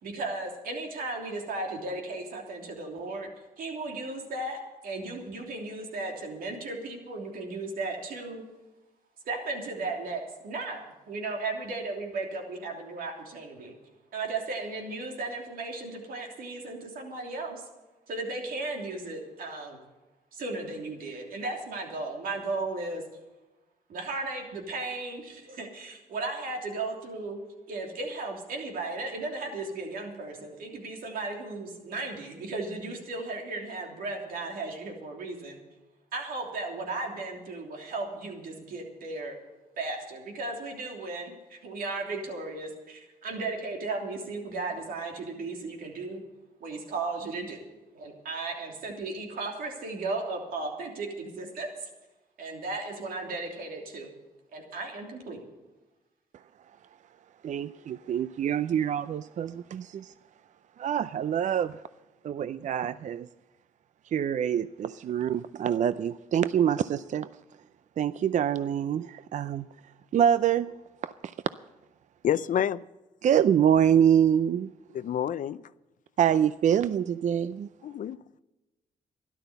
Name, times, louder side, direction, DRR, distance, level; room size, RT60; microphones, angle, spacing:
voice 1, 0.0-3.3 3.6-8.4 9.2-13.7 14.1-17.7 18.1-19.8 20.3-23.0 23.9-27.4 27.7-35.6 36.1-39.3 39.8-46.2 46.6-47.6 47.9-51.9 52.4-54.1 54.5-55.4, right 3 dB, 80° right, 3.1 m, -35 dB
voice 2, 57.4-60.1 60.8-61.7 62.2-63.3 64.1-67.3 68.0-69.7 70.1-70.7 71.0-71.1 73.2-74.7 76.2-77.7, right 9 dB, 55° right, 0.4 m, -25 dB
voice 3, 72.2-72.8 74.9-75.6 77.8-78.4, left 9 dB, 60° left, 0.5 m, -28 dB
13.0 x 11.5 x 6.9 m
cardioid pair, 75°, 15 cm